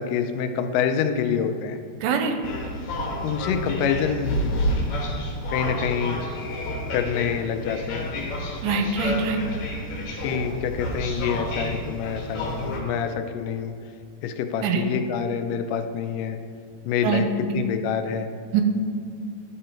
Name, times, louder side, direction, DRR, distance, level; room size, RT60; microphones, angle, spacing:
voice 1, 0.0-1.8 3.2-4.6 5.5-6.2 6.9-8.1 10.2-13.7 14.2-16.4 16.9-18.3, left 7 dB, 85° left, 7 dB, 2.2 m, -26 dB
voice 2, 2.0-2.3 8.6-9.4 14.6-14.9 17.0-17.2 17.5-17.7 18.5-18.6, right 6 dB, 90° right, 5 dB, 2.2 m, -23 dB
sound 1, 2.4-12.8, left 1 dB, 65° left, 2.2 m, -30 dB
11.0 x 3.8 x 4.4 m, 2.2 s
omnidirectional pair, 3.8 m